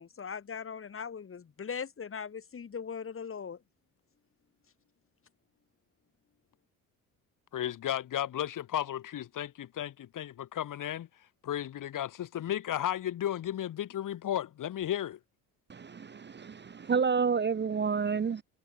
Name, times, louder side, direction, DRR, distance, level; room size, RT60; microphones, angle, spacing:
voice 1, 0.0-3.6, left 6 dB, 35° left, 1.7 m, -39 dB
voice 2, 7.5-11.1 11.4-15.2, left 11 dB, 50° left, 1.4 m, -34 dB
voice 3, 15.7-18.4, right 6 dB, 25° right, 0.9 m, -29 dB
supercardioid pair, 70°, 39 cm